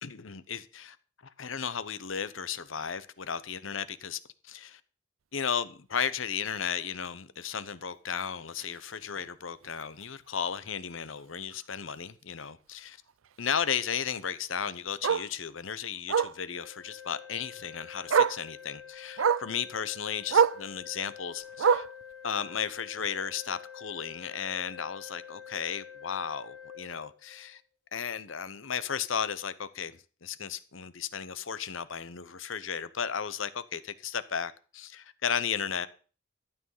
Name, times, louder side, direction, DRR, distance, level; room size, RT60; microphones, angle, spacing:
voice 1, 0.0-1.0 1.4-4.8 5.3-13.0 13.4-21.9 22.2-27.6 27.9-35.9, left 7 dB, 75° left, 0.9 m, -34 dB
Bark, 8.6-8.8 9.2-9.3 9.6-9.7 10.0-10.1 11.5-11.6 14.1-14.2 15.0-15.3 16.1-16.4 17.6-17.7 18.1-18.4 19.2-19.5 20.3-20.6 21.6-22.0 23.0-23.1, right 6 dB, 85° right, 0.5 m, -24 dB
Organ, 16.5-27.6, left 8 dB, 50° left, 5.1 m, -48 dB
12.5 x 8.9 x 5.6 m
head